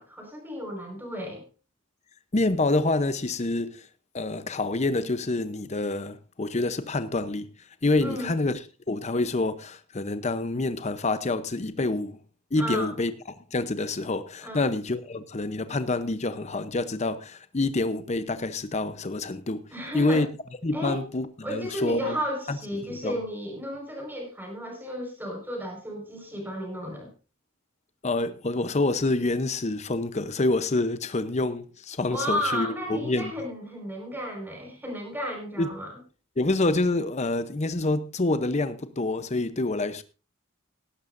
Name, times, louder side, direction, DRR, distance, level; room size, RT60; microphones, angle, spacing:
voice 1, 0.0-1.4 8.0-8.3 12.6-12.9 14.4-14.6 19.7-20.2 20.7-21.0 21.4-27.1 32.0-36.0, equal, 10° right, 4.8 m, -33 dB
voice 2, 2.3-3.9 4.1-7.5 7.8-8.5 8.9-12.2 12.5-13.1 13.5-19.7 19.9-20.3 20.6-22.2 22.5-22.6 22.8-23.2 28.0-33.3 35.6-35.7 36.4-40.0, left 2 dB, 30° left, 0.7 m, -27 dB
18.0 x 12.5 x 2.6 m
head